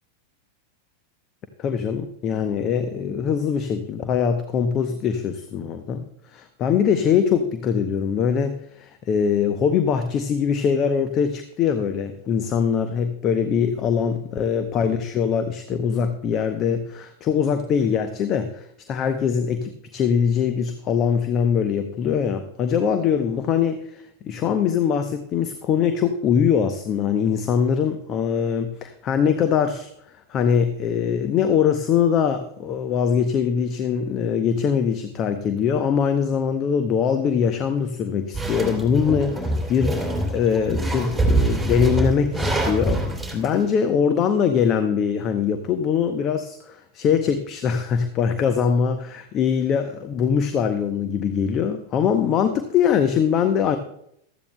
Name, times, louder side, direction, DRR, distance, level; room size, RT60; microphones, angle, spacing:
voice 1, 1.6-29.9 30.3-43.0 43.3-53.8, left 7 dB, 30° left, 9 dB, 0.7 m, -22 dB
sound 1, 38.3-43.5, right 2 dB, ahead, 2.8 m, -24 dB
15.5 x 13.0 x 2.2 m, 0.73 s
figure-of-eight pair, 90°, 0 cm